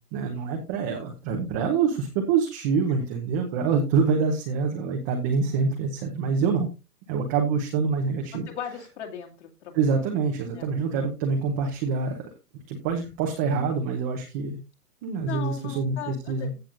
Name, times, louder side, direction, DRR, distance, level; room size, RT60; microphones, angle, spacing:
voice 1, 0.1-6.7 7.1-8.5 9.7-12.3 12.7-14.6 15.0-16.5, right 5 dB, 10° right, 2 dB, 0.8 m, -26 dB
voice 2, 8.5-9.8 10.6-10.7 15.2-16.6, left 9 dB, 45° left, 2 dB, 2.5 m, -37 dB
15.5 x 6.9 x 2.6 m, 0.27 s
hypercardioid pair, 155°, 47 cm